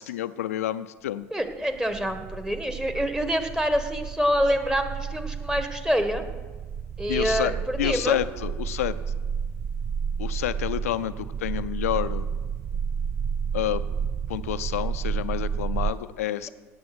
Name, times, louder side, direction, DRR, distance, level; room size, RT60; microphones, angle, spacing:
voice 1, 0.0-1.3 7.1-7.5 7.8-9.0 10.2-12.3 13.5-13.8 14.3-16.5, left 12 dB, 85° left, 14 dB, 0.5 m, -29 dB
voice 2, 1.3-6.2 7.0-8.2, equal, 10° right, 7 dB, 1.6 m, -26 dB
sound 1, 1.5-15.9, right 6 dB, 40° right, 0.5 m, -31 dB
17.5 x 7.1 x 6.1 m, 1.3 s
hypercardioid pair, 70°, 8 cm